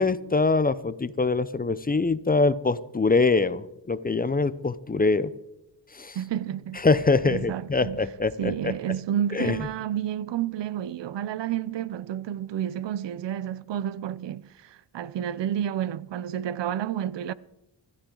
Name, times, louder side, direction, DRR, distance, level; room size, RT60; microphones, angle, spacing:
voice 1, 0.0-5.3 5.9-6.2 6.8-8.7 9.3-9.6, left 3 dB, 20° left, 0.6 m, -24 dB
voice 2, 6.1-6.8 7.3-8.0 8.4-17.3, right 10 dB, 80° right, 0.7 m, -30 dB
24.5 x 13.0 x 3.9 m
cardioid pair, 105°, 43 cm